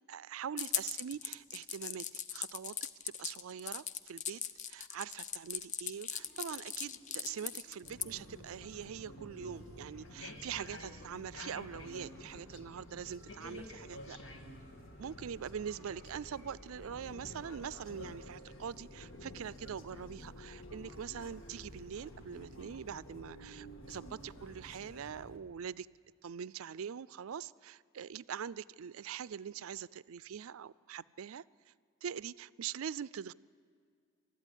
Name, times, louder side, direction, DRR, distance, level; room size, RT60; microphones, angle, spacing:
voice 1, 0.1-2.8 3.0-4.4 4.7-14.2 15.0-25.9 26.2-31.7 32.0-33.3, right 8 dB, 75° right, 20 dB, 0.4 m, -43 dB
sound 1, 0.6-8.1, left 9 dB, 35° left, 0.6 m, -39 dB
sound 2, 6.2-23.1, equal, 15° left, 4.3 m, -64 dB
sound 3, 7.8-25.4, left 1 dB, 65° left, 1.8 m, -50 dB
20.5 x 13.5 x 9.9 m, 2.2 s
head